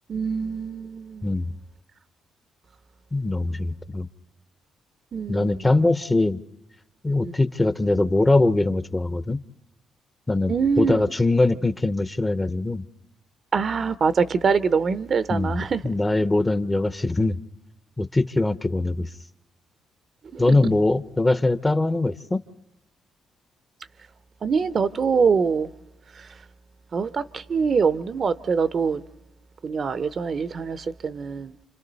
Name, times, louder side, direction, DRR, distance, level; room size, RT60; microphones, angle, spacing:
voice 1, 0.1-1.3 5.1-5.7 10.5-11.0 13.5-15.8 20.3-20.6 24.4-25.7 26.2-26.3 26.9-29.0 29.6-31.5, right 5 dB, 45° right, 0.7 m, -24 dB
voice 2, 3.1-4.1 5.3-6.4 7.0-9.4 10.3-12.8 15.3-17.4 18.0-19.1 20.4-22.4, left 2 dB, 15° left, 0.7 m, -22 dB
28.5 x 25.5 x 4.1 m
cardioid pair, 90°, 0 cm